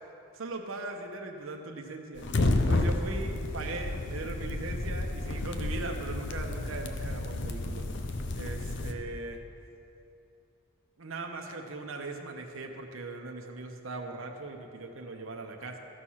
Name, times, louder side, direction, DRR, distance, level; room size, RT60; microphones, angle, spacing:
voice 1, 0.4-9.4 11.0-15.8, right 2 dB, 70° right, 3 dB, 0.9 m, -39 dB
sound 1, 2.2-8.9, left 2 dB, 55° left, 0.6 m, -31 dB
14.0 x 6.3 x 5.7 m, 2.8 s
head